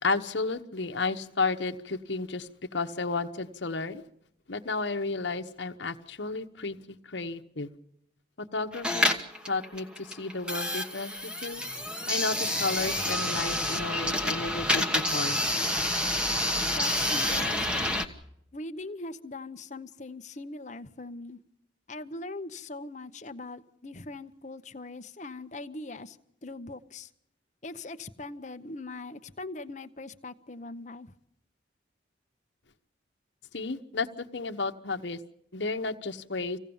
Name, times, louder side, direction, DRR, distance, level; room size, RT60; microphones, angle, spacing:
voice 1, 0.0-4.0 4.5-7.7 8.4-9.1 9.5-11.1 11.4-11.6 12.1-15.4 33.5-35.2 35.5-36.6, left 3 dB, 70° left, 6 dB, 1.2 m, -32 dB
sound 1, 8.7-18.1, left 1 dB, 5° right, 1.3 m, -28 dB
voice 2, 16.6-18.0 18.5-21.4 21.9-26.2 26.4-27.1 27.6-31.1, left 2 dB, 40° left, 9 dB, 0.9 m, -41 dB
25.5 x 17.0 x 7.1 m, 0.76 s
head